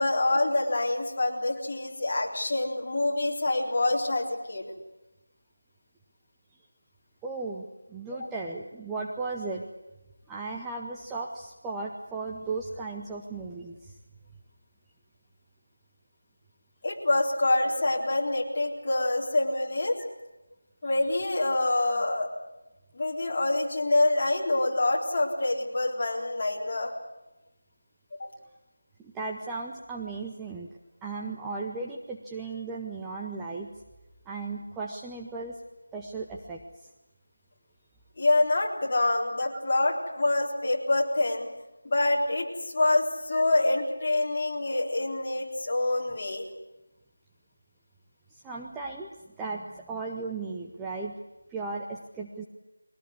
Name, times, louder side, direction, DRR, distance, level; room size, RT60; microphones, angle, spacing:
voice 1, 0.0-4.6 16.8-20.0 20.8-22.3 22.9-26.9 28.2-28.3 38.2-41.5 41.8-46.5, left 2 dB, 30° left, -2 dB, 4.0 m, -26 dB
voice 2, 7.2-9.7 10.3-14.0 29.0-30.7 31.0-33.7 34.3-35.6 35.9-36.9 43.3-43.4 48.3-49.1 49.4-51.2 51.5-52.4, right 3 dB, 5° right, -1 dB, 0.8 m, -36 dB
22.5 x 18.5 x 9.7 m, 1.0 s
figure-of-eight pair, 175°, 0 cm